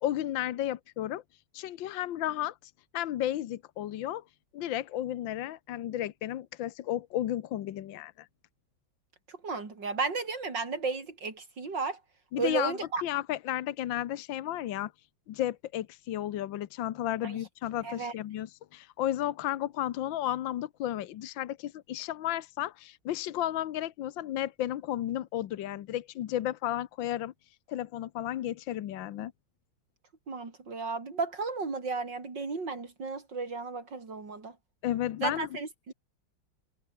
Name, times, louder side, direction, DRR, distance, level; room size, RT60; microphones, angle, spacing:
voice 1, 0.0-1.2 1.5-4.2 4.5-8.3 12.3-14.9 15.3-27.3 27.7-29.3 34.8-35.5, left 12 dB, 75° left, 1.6 m, -33 dB
voice 2, 9.3-12.0 12.4-13.0 17.2-17.4 17.8-18.1 30.3-34.6 35.2-35.9, right 4 dB, 65° right, 4.6 m, -34 dB
omnidirectional pair, 2.1 m